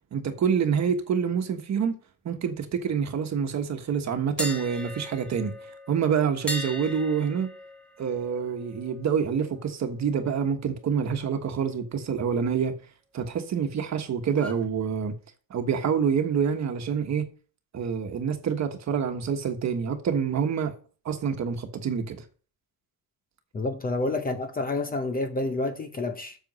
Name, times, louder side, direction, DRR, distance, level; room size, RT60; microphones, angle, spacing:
voice 1, 0.1-2.0 2.2-5.6 5.9-7.5 8.0-12.8 13.1-15.1 15.5-17.2 17.7-20.7 21.0-22.2, right 7 dB, 45° right, 1.3 m, -27 dB
sound 1, 4.4-10.3 10.6-10.8 14.3-14.7, left 1 dB, 5° left, 1.3 m, -39 dB
voice 2, 23.5-26.4, left 2 dB, 20° left, 0.7 m, -29 dB
7.9 x 6.9 x 5.4 m
cardioid pair, 175°, 40 cm